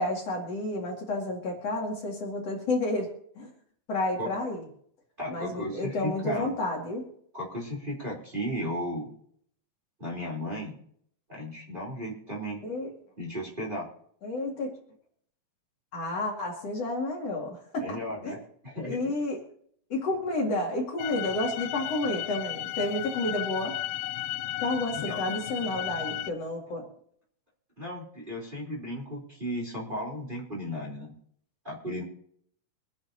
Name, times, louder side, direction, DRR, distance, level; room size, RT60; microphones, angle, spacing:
voice 1, 0.0-3.1 3.4-3.5 3.9-4.6 5.3-7.0 12.6-12.9 14.2-14.7 15.9-18.4 18.8-19.4 19.9-23.7 24.6-26.9, left 2 dB, 50° left, -1 dB, 3.1 m, -30 dB
voice 2, 5.2-6.5 7.3-9.1 10.0-10.8 11.3-12.6 13.2-13.9 17.8-18.4 18.6-19.0 25.1-25.2 27.8-31.1 31.6-32.0, equal, 15° right, -5 dB, 3.3 m, -35 dB
sound 1, 21.0-26.3, left 14 dB, 80° left, 1.6 m, -34 dB
25.0 x 10.5 x 2.7 m, 0.64 s
omnidirectional pair, 3.7 m